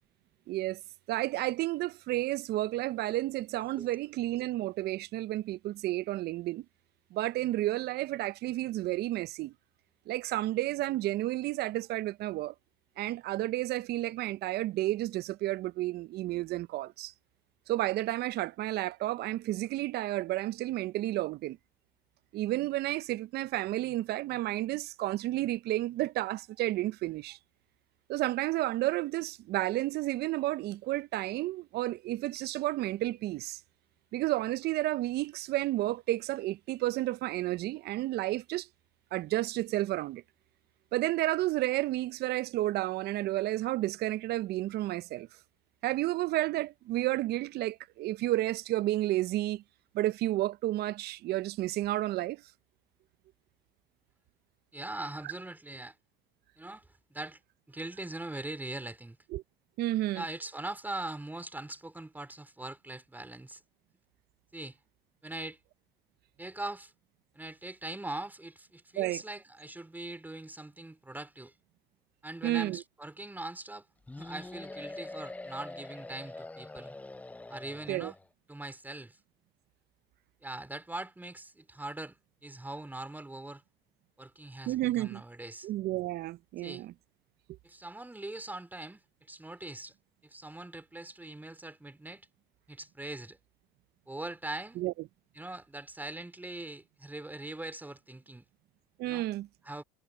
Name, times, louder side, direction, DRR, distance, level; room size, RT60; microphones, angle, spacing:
voice 1, 0.5-0.8 1.1-6.6 7.1-9.5 10.1-12.5 13.0-17.1 17.7-21.6 22.3-27.4 28.1-33.6 34.1-38.7 39.1-40.2 40.9-45.3 45.8-49.6 49.9-52.4 59.3-59.4 59.8-60.2 69.0-69.2 72.4-72.8 77.9-78.1 84.7-85.2 85.6-86.9 94.8-94.9 99.0-99.5, right 16 dB, 55° right, 0.8 m, -31 dB
voice 2, 54.7-56.0 56.6-57.4 57.7-59.2 60.1-63.6 64.5-64.8 65.2-65.6 66.4-66.9 67.3-71.5 72.2-73.9 74.2-77.0 77.5-78.2 78.5-79.2 80.4-82.2 82.4-83.6 84.2-85.7 86.6-86.8 87.6-89.0 89.3-89.9 90.2-92.3 92.7-93.4 94.1-94.8 95.3-98.5 99.0-99.3 99.6-99.8, right 2 dB, 10° right, 4.3 m, -41 dB
sound 1, 74.1-78.2, left 2 dB, 5° left, 0.5 m, -44 dB
hypercardioid pair, 85°, 20 cm